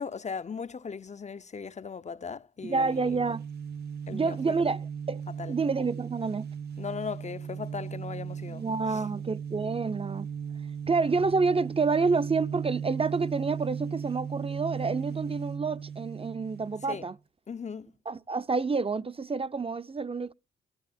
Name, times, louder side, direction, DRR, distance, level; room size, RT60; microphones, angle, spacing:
voice 1, 0.0-3.2 4.1-4.6 5.4-5.5 6.8-9.2 16.8-17.1 17.5-17.9, left 5 dB, 35° left, 0.5 m, -38 dB
voice 2, 2.6-3.4 4.1-4.8 5.1-5.2 5.5-6.5 8.5-10.3 10.9-17.1 18.1-20.3, right 4 dB, 25° right, 0.5 m, -28 dB
sound 1, 2.6-17.2, right 7 dB, 50° right, 0.9 m, -37 dB
19.0 x 12.5 x 2.6 m
supercardioid pair, 45°, 21 cm